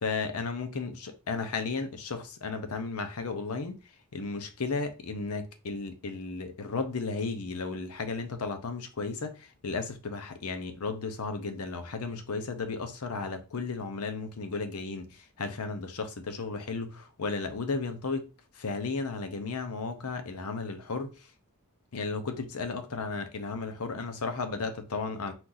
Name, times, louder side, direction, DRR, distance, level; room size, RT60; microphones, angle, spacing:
voice 1, 0.0-3.7 4.1-18.3 18.5-21.3 21.9-25.3, left 4 dB, 80° left, 0.8 m, -34 dB
4.3 x 2.6 x 3.9 m
head